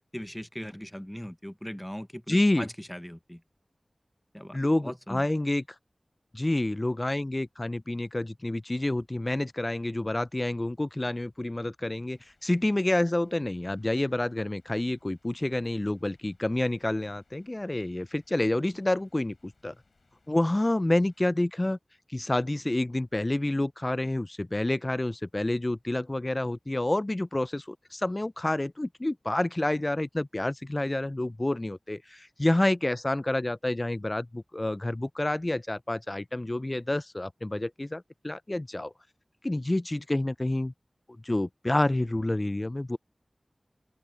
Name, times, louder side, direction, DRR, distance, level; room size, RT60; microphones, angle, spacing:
voice 1, 0.0-3.4 4.3-4.6 4.8-5.3, equal, 5° left, 1.1 m, -39 dB
voice 2, 2.3-2.7 4.5-5.6 6.3-19.7 20.3-21.8 22.1-38.9 39.4-40.7 41.2-43.0, left 1 dB, 30° left, 0.4 m, -28 dB
sound 1, 12.1-21.3, left 3 dB, 70° left, 6.8 m, -69 dB
open air
wide cardioid pair, 50°, 0 cm